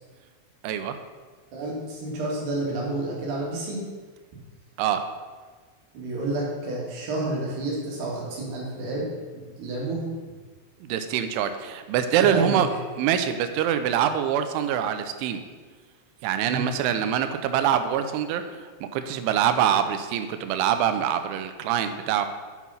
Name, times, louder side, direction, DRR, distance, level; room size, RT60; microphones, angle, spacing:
voice 1, 0.6-1.0 4.8-5.0 10.8-12.7 13.0-15.4 16.2-22.3, right 9 dB, 90° right, 9 dB, 3.1 m, -24 dB
voice 2, 1.5-3.8 5.9-9.1 9.3-10.1 12.2-12.6 16.4-16.7, right 2 dB, 65° right, -4 dB, 4.0 m, -30 dB
9.1 x 6.2 x 5.7 m, 1.4 s
omnidirectional pair, 5.4 m